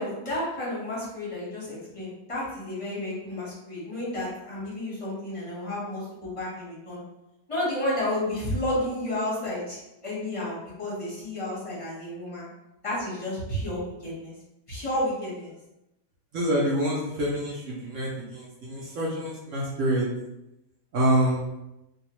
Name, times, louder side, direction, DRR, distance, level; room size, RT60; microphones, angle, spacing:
voice 1, 0.0-7.0 7.5-12.5 12.8-14.3 14.7-15.5, left 1 dB, 25° left, -7 dB, 0.7 m, -31 dB
voice 2, 16.3-20.1 20.9-21.5, right 1 dB, 65° right, -5 dB, 0.8 m, -26 dB
2.7 x 2.3 x 2.9 m, 0.91 s
omnidirectional pair, 1.8 m